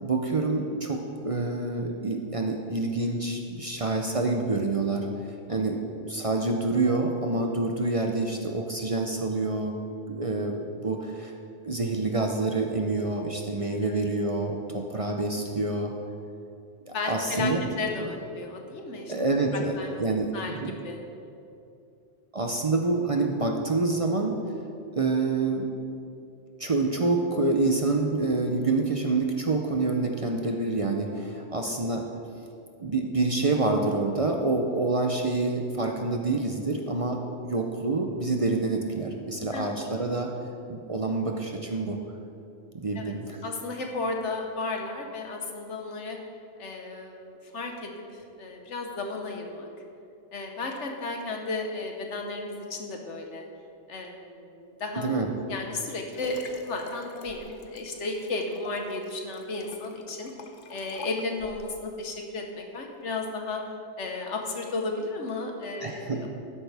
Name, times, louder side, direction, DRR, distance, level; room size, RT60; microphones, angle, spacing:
voice 1, 0.0-9.8 10.1-11.4 11.6-15.9 16.9-17.6 19.1-20.3 20.6-20.7 22.3-24.4 25.0-25.7 26.6-32.1 32.8-40.3 40.7-42.0 42.7-43.4 55.0-55.3 65.8-66.3, right 3 dB, 35° right, 2 dB, 0.6 m, -27 dB
voice 2, 16.9-19.1 19.8-20.0 20.3-21.0 31.7-31.8 39.5-39.7 42.9-43.1 43.4-46.2 46.6-49.7 50.3-53.5 53.9-55.1 55.5-60.3 60.7-63.6 64.0-66.3, left 3 dB, 80° left, 2 dB, 1.5 m, -34 dB
Liquid, 55.5-61.8 62.4-62.5, left 4 dB, 55° left, 0.8 m, -47 dB
13.0 x 10.5 x 3.4 m, 2.6 s
omnidirectional pair, 1.2 m